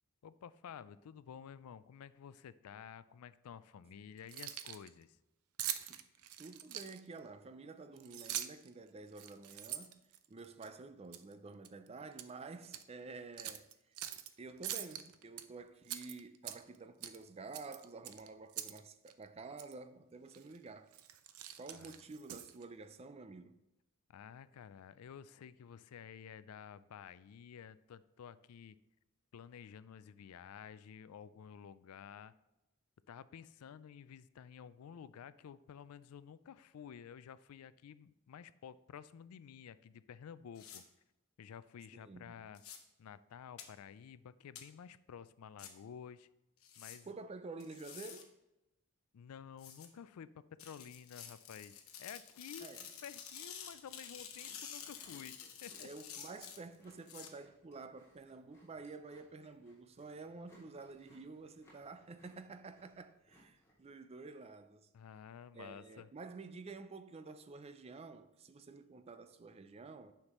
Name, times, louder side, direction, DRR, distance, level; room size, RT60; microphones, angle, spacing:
voice 1, 0.2-5.2 21.7-22.0 24.1-28.8 29.3-32.3 33.1-40.8 41.4-42.6 43.0-46.3 46.8-47.1 49.1-52.7 53.0-55.9 64.9-66.1, left 8 dB, 90° left, 0.4 m, -52 dB
Keys jangling, 4.2-4.9 5.6-7.2 8.0-8.7 9.1-10.7 11.1-11.3 11.6-12.3 12.6-12.8 13.4-14.3 14.6-15.4 15.8-16.8 17.0-17.2 17.5-18.8 19.1-19.2 19.6-19.7 20.3-20.6 20.9-22.6, right 11 dB, 85° right, 0.5 m, -43 dB
voice 2, 6.4-10.0 10.3-13.7 14.4-20.9 21.6-23.6 41.9-42.5 47.1-48.3 52.6-52.9 55.8-64.9 65.5-70.1, right 3 dB, 30° right, 0.4 m, -50 dB
sound 1, 40.6-40.8 42.5-42.8 43.6-43.7 44.6-44.7 45.6-45.7 46.6-47.0 47.6-48.2 49.6-49.9 50.6-57.3, left 8 dB, 70° left, 1.0 m, -50 dB
Chewing mastication, 53.0-63.9, equal, 15° left, 2.6 m, -68 dB
9.6 x 5.8 x 3.0 m
head